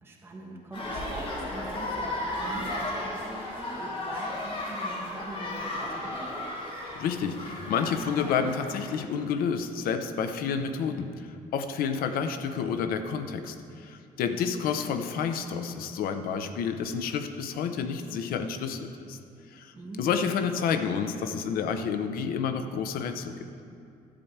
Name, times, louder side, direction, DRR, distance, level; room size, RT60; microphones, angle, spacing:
voice 1, 0.0-6.4 14.3-14.5 19.7-20.2, right 2 dB, 15° right, -2 dB, 1.4 m, -42 dB
sound 1, 0.7-9.0, left 1 dB, 35° left, 1.4 m, -35 dB
voice 2, 7.0-19.2 19.5-23.5, left 6 dB, 85° left, 8 dB, 0.7 m, -30 dB
12.0 x 4.7 x 7.9 m, 2.5 s
cardioid pair, 175°, 15 cm